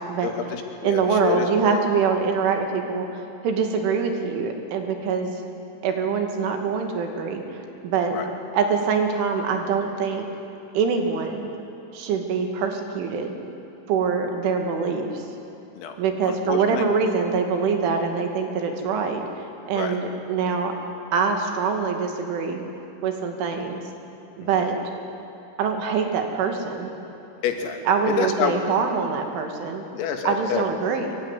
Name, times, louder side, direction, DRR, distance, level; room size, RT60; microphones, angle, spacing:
voice 1, 0.2-1.8 8.1-8.3 15.8-16.0 16.2-16.9 19.7-20.0 24.4-24.5 27.4-27.8 28.1-28.7 29.9-30.6, left 7 dB, 85° left, 4 dB, 4.8 m, -28 dB
voice 2, 0.8-5.4 5.8-8.2 8.5-10.3 10.7-11.5 11.9-13.4 13.9-15.2 16.0-20.7 21.1-22.7 23.0-23.8 24.4-24.8 25.6-26.9 27.9-29.8 30.3-31.2, right 5 dB, 70° right, 4 dB, 4.7 m, -24 dB
24.0 x 23.5 x 9.9 m, 3.0 s
omnidirectional pair, 5.9 m